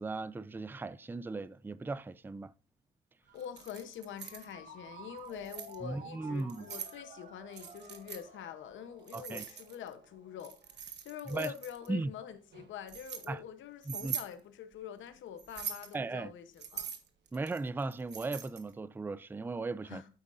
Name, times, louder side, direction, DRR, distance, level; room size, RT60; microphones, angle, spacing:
voice 1, 0.0-2.5 5.8-6.7 9.1-9.4 11.3-11.5 11.9-12.1 13.3-13.4 13.9-14.1 15.9-16.3 17.3-20.0, right 3 dB, 10° right, 0.4 m, -37 dB
voice 2, 3.3-16.9 19.8-20.1, left 9 dB, 75° left, 1.0 m, -45 dB
Ringtone, 3.3-10.8, right 3 dB, 40° right, 1.7 m, -53 dB
Keys jangling, 3.4-4.5 5.2-5.8 6.4-7.0 7.5-8.2 9.1-9.9 10.4-11.9 12.5-13.3 13.8-14.3 15.4-15.9 16.6-18.7, right 8 dB, 60° right, 1.3 m, -42 dB
9.3 x 8.1 x 2.6 m
cardioid pair, 90°, 20 cm